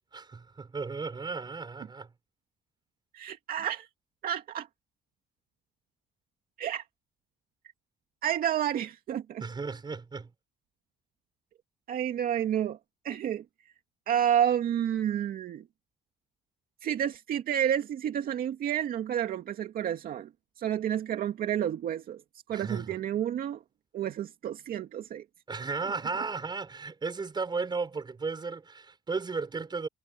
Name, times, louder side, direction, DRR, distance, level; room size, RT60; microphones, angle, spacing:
voice 1, 0.1-2.1 9.4-10.3 22.5-23.0 25.5-29.9, right 4 dB, 25° right, 5.9 m, -35 dB
voice 2, 3.1-3.9 4.2-4.7 6.6-6.8 8.2-9.4 11.9-12.8 13.0-13.4 14.1-15.6 16.8-20.3 20.6-22.2 22.5-23.6 23.9-25.2, right 10 dB, 60° right, 2.4 m, -30 dB
cardioid pair, 110°, 17 cm